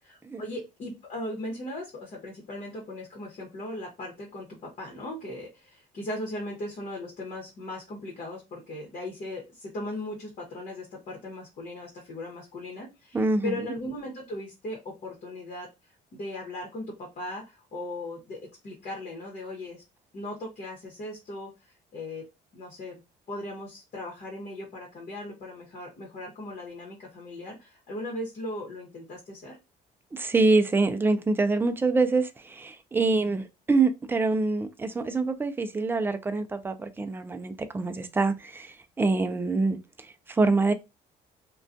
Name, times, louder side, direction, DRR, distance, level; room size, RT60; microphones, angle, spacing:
voice 1, 0.1-19.8 20.1-22.3 22.5-23.0 23.3-29.6 33.1-33.4, left 1 dB, 45° left, 1.0 m, -38 dB
voice 2, 13.1-13.5 30.1-39.8 40.3-40.7, right 3 dB, 15° right, 0.3 m, -25 dB
2.3 x 2.2 x 2.6 m
cardioid pair, 110°, 17 cm